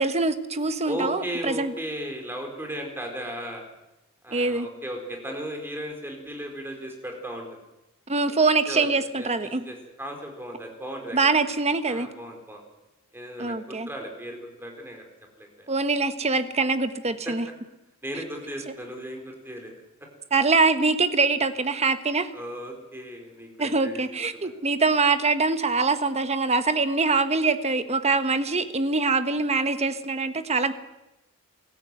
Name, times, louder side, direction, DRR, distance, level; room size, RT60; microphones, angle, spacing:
voice 1, 0.0-1.7 4.3-4.7 8.1-9.7 11.1-12.1 13.4-13.9 15.7-17.5 18.7-18.8 20.3-22.3 23.6-30.7, right 3 dB, 30° right, 10 dB, 1.3 m, -24 dB
voice 2, 0.9-3.6 4.2-7.5 8.7-11.2 11.9-12.6 13.1-15.0 15.4-15.7 17.2-17.3 18.0-19.7 22.3-24.0 24.3-24.5, equal, 10° right, 2 dB, 4.6 m, -36 dB
23.0 x 14.0 x 9.3 m, 0.95 s
head